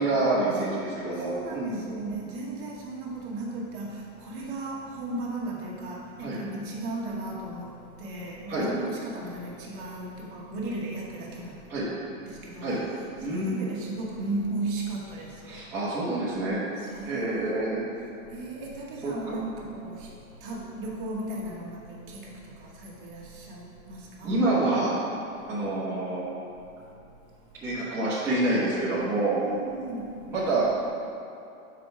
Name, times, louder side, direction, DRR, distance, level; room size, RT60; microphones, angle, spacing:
voice 1, 0.0-1.8 6.2-6.4 8.5-8.7 11.7-11.9 12.6-12.8 13.2-13.7 15.5-16.6 17.0-17.8 19.0-19.4 24.2-24.9 25.5-26.3 27.6-29.4 30.3-30.9, right 2 dB, 5° right, -11 dB, 0.8 m, -27 dB
voice 2, 1.1-11.8 12.2-12.8 13.2-15.7 16.8-17.8 18.3-24.4 25.4-25.6 26.7-26.9 27.2-27.6 29.3-30.3, right 2 dB, 35° right, -3 dB, 1.1 m, -36 dB
5.0 x 4.6 x 5.7 m, 2.7 s
supercardioid pair, 165°, 43 cm